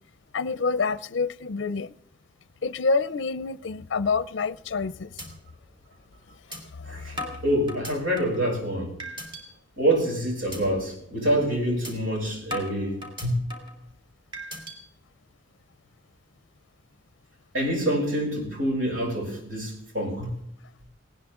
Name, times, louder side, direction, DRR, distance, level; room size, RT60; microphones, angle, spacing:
voice 1, 0.3-1.9 2.6-5.1 6.5-7.1, left 4 dB, 60° left, 16 dB, 0.5 m, -27 dB
sound 1, 4.5-4.8 5.2-5.3 5.7-5.8 6.5-6.6 7.2-8.4 9.0-9.4 9.9-10.1 10.5-10.6 11.0-11.2 11.8-11.9 12.5-13.8 14.3-14.8, left 1 dB, 25° right, 3.6 m, -37 dB
voice 2, 6.9-8.9 9.8-13.4 17.5-20.3, right 1 dB, 75° right, 0 dB, 7.3 m, -26 dB
19.5 x 18.0 x 3.7 m, 0.70 s
head